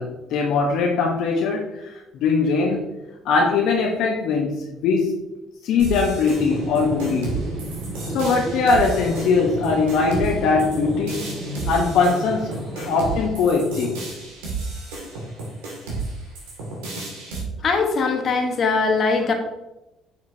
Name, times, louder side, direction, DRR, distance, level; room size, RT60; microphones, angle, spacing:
voice 1, 0.0-2.9 3.2-5.2 5.6-7.4 8.1-11.3 11.7-14.0, left 4 dB, 65° left, -1 dB, 1.0 m, -21 dB
sound 1, 5.8-17.4, right 3 dB, 80° right, 2.0 m, -32 dB
sound 2, 6.3-13.2, right 2 dB, 55° right, 1.9 m, -32 dB
voice 2, 17.6-19.3, left 4 dB, 50° left, 4 dB, 1.2 m, -21 dB
7.2 x 6.4 x 2.7 m, 0.97 s
hypercardioid pair, 60°, 0 cm